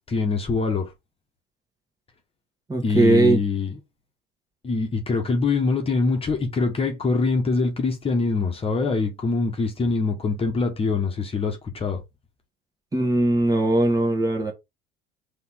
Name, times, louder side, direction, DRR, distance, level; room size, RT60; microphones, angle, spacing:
voice 1, 0.1-0.9 2.8-3.8 4.6-12.0, left 4 dB, 30° left, 1.3 m, -24 dB
voice 2, 2.7-3.4 12.9-14.5, right 2 dB, 15° right, 1.8 m, -20 dB
4.1 x 3.2 x 3.8 m
hypercardioid pair, 80°, 20 cm